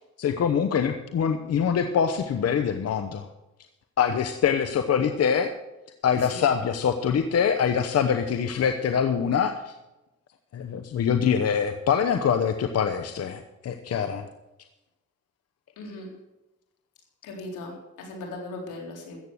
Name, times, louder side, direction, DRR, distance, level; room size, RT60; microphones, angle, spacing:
voice 1, 0.2-3.3 4.0-5.5 6.0-9.7 10.5-14.3, left 7 dB, 55° left, 7 dB, 1.0 m, -24 dB
voice 2, 15.8-16.1 17.2-19.2, left 2 dB, 85° left, 0 dB, 4.0 m, -38 dB
14.5 x 8.5 x 6.4 m, 0.98 s
cardioid pair, 90°, 30 cm